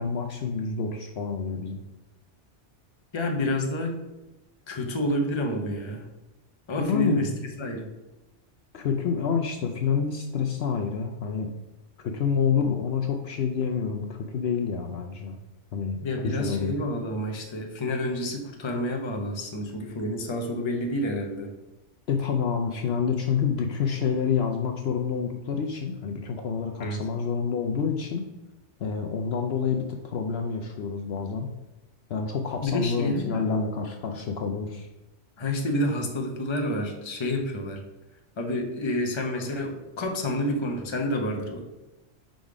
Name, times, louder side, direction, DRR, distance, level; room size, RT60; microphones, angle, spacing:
voice 1, 0.0-1.8 6.8-7.3 8.7-11.5 12.0-15.4 15.7-16.8 22.1-28.3 28.8-31.5 32.1-34.9, left 6 dB, 65° left, 3 dB, 0.8 m, -28 dB
voice 2, 3.1-4.0 4.7-6.0 6.7-7.3 7.6-7.9 16.0-21.5 26.8-27.0 32.6-33.4 35.4-37.8 38.4-41.6, left 1 dB, 30° left, 2 dB, 0.7 m, -29 dB
5.1 x 3.9 x 4.8 m, 1.0 s
omnidirectional pair, 1.2 m